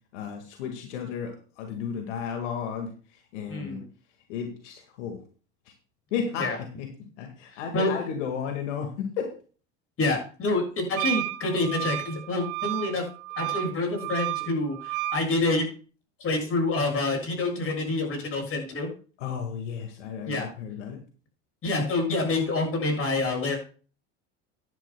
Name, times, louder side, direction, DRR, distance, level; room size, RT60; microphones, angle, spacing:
voice 1, 0.1-3.8 4.3-5.2 6.1-9.4 19.2-21.0, left 7 dB, 85° left, 4 dB, 1.8 m, -33 dB
voice 2, 3.5-3.8 6.4-6.6 7.7-7.9 10.0-13.0 13.4-15.7 16.2-18.9 20.3-20.5 21.6-23.6, left 2 dB, 40° left, 1 dB, 6.9 m, -27 dB
Wind instrument woodwind instrument, 11.0-15.2, right 18 dB, 60° right, 1.9 m, -32 dB
15.0 x 10.5 x 2.2 m, 0.38 s
supercardioid pair, 95°, 35 cm